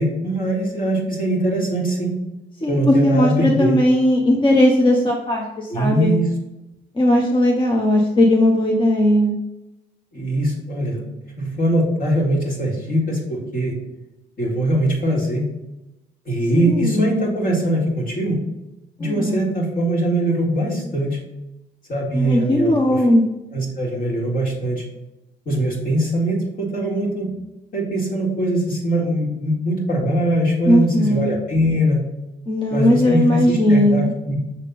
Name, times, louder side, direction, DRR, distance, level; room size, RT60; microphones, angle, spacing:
voice 1, 0.0-2.1 2.7-3.8 5.7-6.3 10.1-11.0 11.4-13.7 14.4-15.5 16.3-18.4 19.0-21.2 21.9-23.0 23.5-24.8 25.5-27.3 27.7-32.0 32.7-34.3, right 1 dB, 45° left, -2 dB, 2.2 m, -21 dB
voice 2, 2.6-6.1 6.9-9.4 16.5-17.1 19.0-19.5 22.1-23.2 30.7-31.4 32.5-34.1, left 1 dB, 25° left, -1 dB, 0.8 m, -17 dB
6.5 x 3.5 x 4.0 m, 0.96 s
cardioid pair, 90°, 20 cm